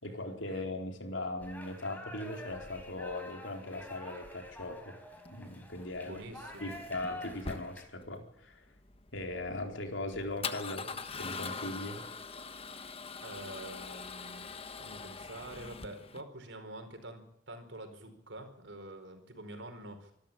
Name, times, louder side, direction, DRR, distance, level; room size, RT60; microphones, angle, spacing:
voice 1, 0.0-5.0 5.3-6.2 6.6-8.7 9.1-12.0, left 2 dB, 80° left, 3 dB, 4.2 m, -39 dB
sound 1, 1.4-7.9, left 1 dB, 10° left, 4.7 m, -48 dB
Male speech man speaking / Car / Engine starting, 5.1-16.2, left 4 dB, 30° left, 1.3 m, -43 dB
voice 2, 6.0-6.7 13.2-14.5 14.8-20.1, right 1 dB, 70° right, 7 dB, 4.7 m, -46 dB
26.0 x 13.0 x 8.8 m, 0.81 s
head